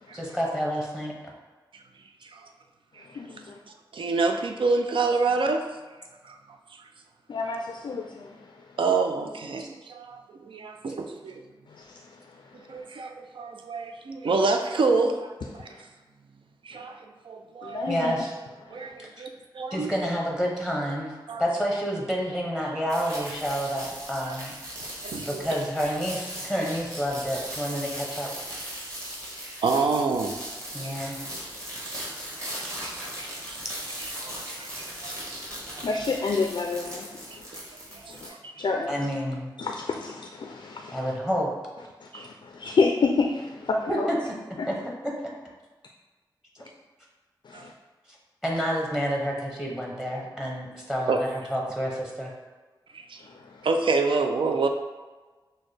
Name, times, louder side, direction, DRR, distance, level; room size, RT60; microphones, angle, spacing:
voice 1, 0.1-1.1 9.6-9.7 17.9-18.3 19.0-19.2 19.7-21.1 21.4-24.5 25.2-28.3 30.7-31.2 38.9-39.5 40.9-41.5 43.9-44.2 44.5-44.7 48.4-52.3, equal, 5° right, -2 dB, 0.7 m, -29 dB
voice 2, 3.1-3.6 7.3-8.5 11.7-12.0 17.6-18.2 18.7-18.9 35.8-37.5 38.1-38.3 38.6-39.1 39.6-41.1 42.0-44.1 44.6-44.7 47.4-47.7 53.3-53.7, left 4 dB, 70° left, 2 dB, 0.3 m, -29 dB
voice 3, 3.9-5.7 6.2-6.9 8.8-11.4 12.5-15.7 16.6-17.9 18.7-19.3 19.5-19.9 21.3-21.4 24.3-24.4 25.0-25.5 26.6-26.7 29.6-30.4 30.7-30.9 31.8-32.0 32.4-33.7 34.0-36.0 37.3-37.4 37.9-38.6 42.1-42.3 47.5-47.7 51.1-51.2 52.9-53.2 53.6-54.7, right 4 dB, 85° right, 5 dB, 0.4 m, -28 dB
sound 1, 22.9-38.3, equal, 35° right, 1.3 m, -38 dB
6.1 x 2.1 x 3.2 m, 1.3 s
wide cardioid pair, 105°, 9 cm